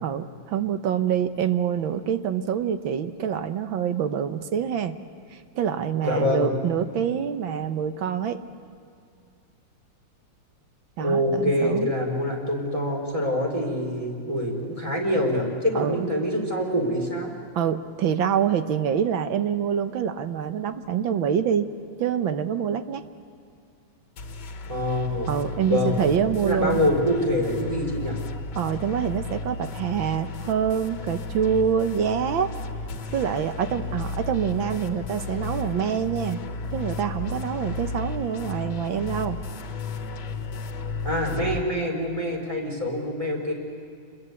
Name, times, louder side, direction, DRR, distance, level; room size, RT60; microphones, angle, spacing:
voice 1, 0.0-5.0 5.3-8.4 11.0-11.9 15.8-16.1 17.6-21.7 22.0-23.0 25.3-26.8 28.6-32.5 33.1-36.4 36.7-39.4, right 8 dB, 90° right, 9 dB, 1.8 m, -26 dB
voice 2, 6.0-6.5 11.0-17.3 24.7-25.3 25.7-26.1 26.4-28.2 41.0-43.5, left 1 dB, 15° right, -1 dB, 4.6 m, -25 dB
sound 1, 24.2-41.6, left 3 dB, 60° left, 2.0 m, -34 dB
28.0 x 21.5 x 8.3 m, 2.3 s
omnidirectional pair, 2.1 m